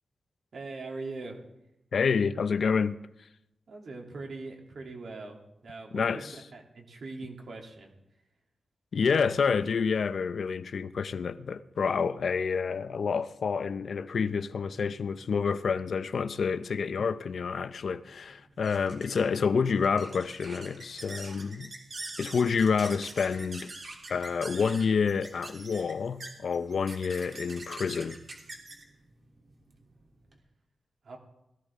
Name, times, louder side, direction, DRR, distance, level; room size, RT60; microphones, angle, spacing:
voice 1, 0.5-1.4 3.7-6.3 6.5-7.9 31.0-31.2, right 3 dB, 70° right, 3.0 m, -41 dB
voice 2, 1.9-3.0 5.9-6.4 8.9-21.7 22.2-23.7 24.1-28.2, left 5 dB, 70° left, 0.6 m, -28 dB
sound 1, 17.5-30.4, right 2 dB, 50° right, 3.2 m, -45 dB
19.5 x 15.0 x 3.7 m
wide cardioid pair, 90°, 0 cm